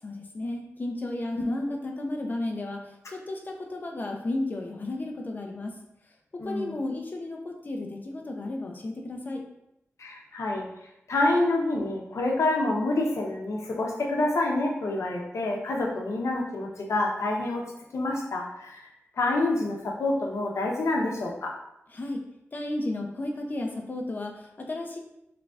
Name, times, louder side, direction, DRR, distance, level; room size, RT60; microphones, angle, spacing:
voice 1, 0.0-5.7 6.3-9.4 21.9-22.2 22.5-25.0, left 2 dB, 40° left, 1 dB, 0.7 m, -33 dB
voice 2, 6.4-6.8 10.0-10.7 11.1-17.7 17.9-18.8 19.2-21.5, left 2 dB, 85° left, -1 dB, 0.8 m, -27 dB
3.7 x 3.3 x 3.6 m, 0.83 s
wide cardioid pair, 130°, 5 cm